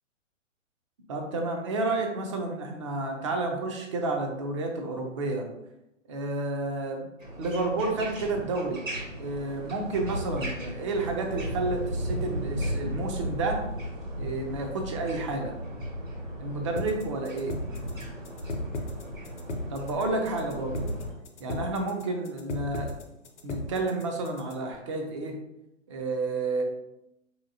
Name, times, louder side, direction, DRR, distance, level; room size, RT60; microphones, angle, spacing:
voice 1, 1.1-5.5 6.1-7.1 7.4-8.9 9.2-13.6 14.2-15.6 16.4-17.6 19.7-20.9 21.4-22.9 23.4-25.4 25.9-26.6, right 3 dB, 25° right, 3 dB, 0.5 m, -30 dB
sound 1, 7.2-21.1, equal, 80° right, 1.3 m, -36 dB
sound 2, 16.8-24.7, left 1 dB, 60° left, 0.8 m, -36 dB
4.3 x 2.8 x 2.7 m, 0.88 s
figure-of-eight pair, 120°, 39 cm